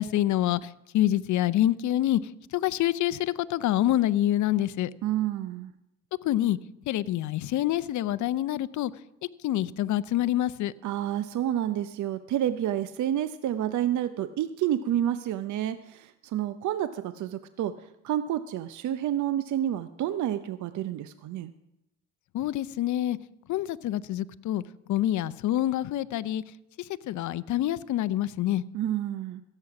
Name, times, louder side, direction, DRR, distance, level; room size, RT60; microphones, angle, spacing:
voice 1, 0.0-2.2 2.5-4.9 6.2-6.6 6.9-8.9 9.4-10.7 22.3-23.2 23.5-24.6 24.9-26.4 26.8-28.6, left 13 dB, 50° left, 0.7 m, -26 dB
voice 2, 5.0-5.7 10.8-17.8 18.0-21.5 28.7-29.4, right 11 dB, 50° right, 0.7 m, -29 dB
16.0 x 7.9 x 5.9 m
hypercardioid pair, 70°, 37 cm